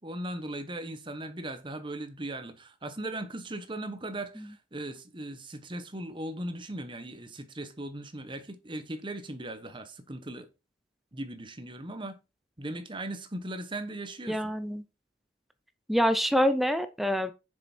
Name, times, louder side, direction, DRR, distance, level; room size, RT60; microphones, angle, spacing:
voice 1, 0.0-10.5 11.1-12.2 12.6-14.4, right 1 dB, 30° right, 1.1 m, -38 dB
voice 2, 14.3-14.8 15.9-17.3, equal, ahead, 0.6 m, -26 dB
6.8 x 6.8 x 4.4 m
head